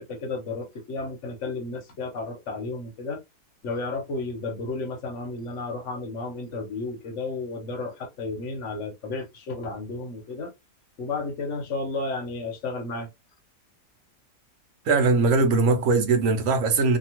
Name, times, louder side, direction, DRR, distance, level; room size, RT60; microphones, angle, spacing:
voice 1, 0.0-3.2 3.6-10.5 11.0-13.1, left 3 dB, 55° left, 0.9 m, -32 dB
voice 2, 14.9-17.0, right 3 dB, 60° right, 1.0 m, -20 dB
2.8 x 2.3 x 2.8 m
omnidirectional pair, 1.7 m